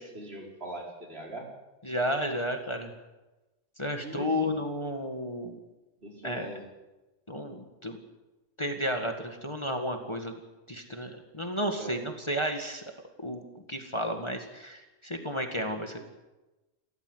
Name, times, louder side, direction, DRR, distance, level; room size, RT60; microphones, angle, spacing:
voice 1, 0.0-1.5 4.0-4.5 6.0-6.6 11.8-12.0, right 1 dB, 55° right, 0 dB, 4.9 m, -41 dB
voice 2, 1.8-2.9 3.8-5.6 6.2-6.5 7.3-8.0 8.6-10.4 10.7-12.8 13.2-16.0, equal, 25° left, 4 dB, 2.0 m, -32 dB
29.0 x 14.0 x 8.0 m, 1.1 s
omnidirectional pair, 1.3 m